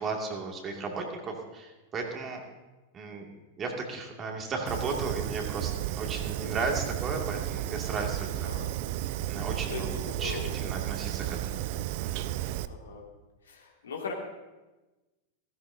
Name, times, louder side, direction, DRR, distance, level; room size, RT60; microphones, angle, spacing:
voice 1, 0.0-2.4 2.9-3.3 3.6-8.5 9.3-9.9 10.2-11.6 12.0-12.3, right 4 dB, 25° right, 1 dB, 2.5 m, -35 dB
Fire, 4.7-12.7, right 14 dB, 50° right, 0.4 m, -33 dB
voice 2, 8.3-8.7 9.7-10.7 12.6-13.0 13.4-14.1, left 5 dB, 70° left, 0 dB, 2.4 m, -39 dB
16.5 x 16.0 x 2.8 m, 1.1 s
figure-of-eight pair, 90°, 0 cm